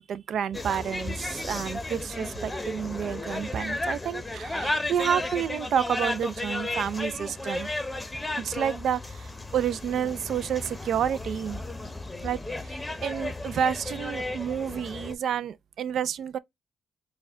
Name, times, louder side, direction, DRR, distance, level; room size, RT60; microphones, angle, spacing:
voice 1, 0.0-7.7 8.4-11.6 12.2-16.4, right 8 dB, 65° right, 0.4 m, -30 dB
sound 1, 0.5-15.1, left 2 dB, 10° left, 0.8 m, -34 dB
4.6 x 2.2 x 3.6 m
cardioid pair, 90°, 0 cm